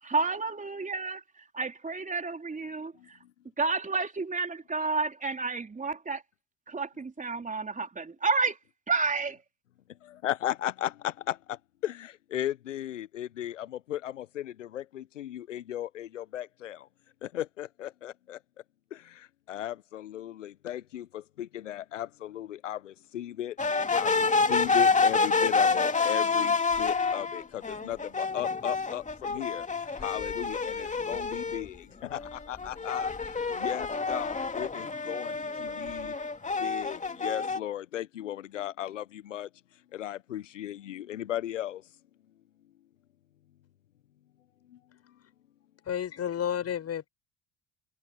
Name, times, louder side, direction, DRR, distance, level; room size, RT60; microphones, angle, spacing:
voice 1, 0.0-1.2 1.5-3.2 3.6-6.2 6.7-8.6 8.9-9.4, right 4 dB, 20° right, 4.0 m, -30 dB
voice 2, 10.0-16.9 17.2-18.4 18.9-23.6 23.9-36.2 36.6-39.5 39.9-41.9 44.7-44.8, left 12 dB, 85° left, 1.0 m, -36 dB
sound 1, 23.6-31.7 32.1-37.6, left 4 dB, 20° left, 2.8 m, -28 dB
voice 3, 45.9-47.1, left 9 dB, 40° left, 7.5 m, -31 dB
hypercardioid pair, 65°, 36 cm